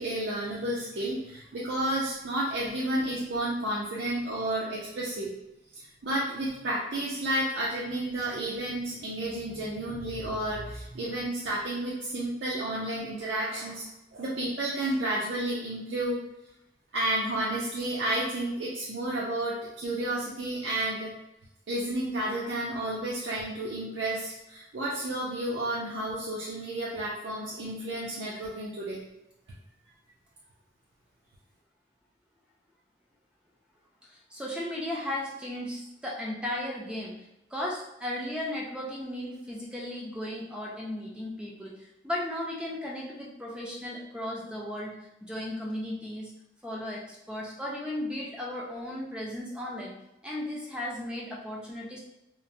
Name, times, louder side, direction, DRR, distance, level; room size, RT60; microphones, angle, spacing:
voice 1, 0.0-5.3 5.7-13.8 14.1-16.2 16.9-21.1 21.7-29.0, right 1 dB, 85° right, -6 dB, 0.5 m, -31 dB
voice 2, 34.1-37.2 37.5-46.3 46.6-49.9 50.2-52.0, left 1 dB, 5° right, -4 dB, 0.3 m, -35 dB
3.0 x 2.1 x 2.5 m, 0.90 s
head